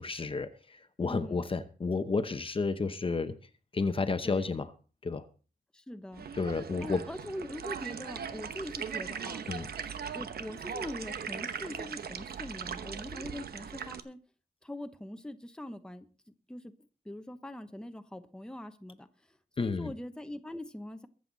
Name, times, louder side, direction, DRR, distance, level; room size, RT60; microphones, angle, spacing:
voice 1, 0.0-3.3 3.7-4.7 5.0-5.3 6.3-7.0 9.5-9.7 19.6-19.9, left 4 dB, 35° left, 0.9 m, -31 dB
voice 2, 1.1-1.4 4.2-4.5 5.7-6.3 6.8-9.4 10.1-14.2 14.6-16.1 16.5-16.7 17.0-19.1 19.6-21.1, left 1 dB, 5° left, 0.9 m, -42 dB
sound 1, 6.1-14.0, right 7 dB, 80° right, 1.0 m, -39 dB
23.0 x 7.9 x 4.0 m
wide cardioid pair, 145°, 16 cm